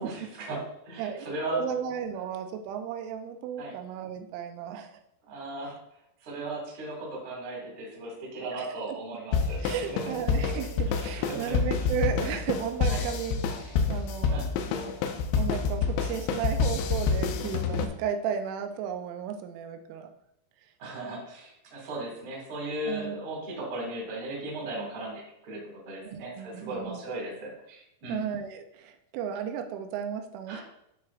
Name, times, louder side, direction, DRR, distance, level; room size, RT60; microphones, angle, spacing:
voice 1, 0.0-1.6 3.6-3.7 5.3-5.8 6.2-10.0 10.9-11.5 12.9-13.1 14.3-14.5 20.8-28.2 30.5-30.6, right 2 dB, 45° right, -2 dB, 1.7 m, -37 dB
voice 2, 1.5-5.0 8.5-9.2 9.6-14.4 15.4-20.1 22.9-23.2 26.1-27.0 28.1-30.6, right 8 dB, 85° right, 7 dB, 3.1 m, -34 dB
sound 1, 9.3-17.9, left 5 dB, 80° left, 2.7 m, -28 dB
12.5 x 4.5 x 2.4 m, 0.79 s
omnidirectional pair, 5.5 m